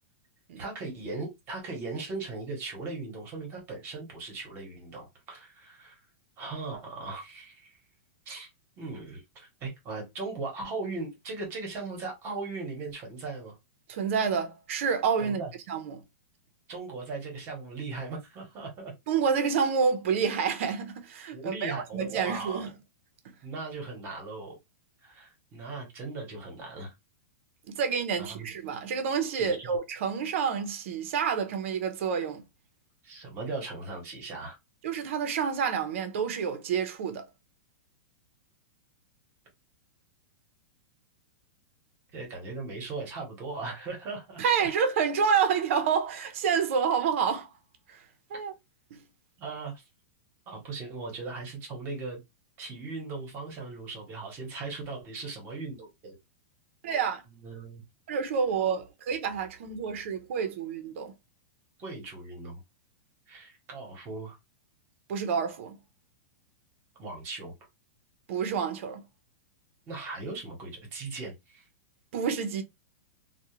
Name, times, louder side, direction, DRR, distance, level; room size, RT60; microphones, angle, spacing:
voice 1, 0.6-6.0 6.4-7.8 8.3-8.5 8.8-13.6 15.2-15.5 16.7-18.9 21.3-22.7 23.4-24.6 25.0-26.9 28.2-28.5 29.4-29.7 33.0-34.6 42.1-44.4 49.4-49.8 50.5-52.2 52.6-56.2 57.3-57.8 61.8-62.6 63.3-64.4 67.0-67.5 69.9-71.7, right 3 dB, 25° right, 0.9 m, -38 dB
voice 2, 13.9-15.4 15.7-16.0 19.1-22.7 27.7-32.4 34.8-37.3 44.4-47.5 47.9-48.0 48.3-48.5 48.9-49.0 56.8-57.2 58.1-61.1 65.1-65.8 68.3-69.0 72.1-72.6, right 6 dB, 55° right, 0.5 m, -28 dB
2.3 x 2.1 x 2.9 m
supercardioid pair, 160°, 8 cm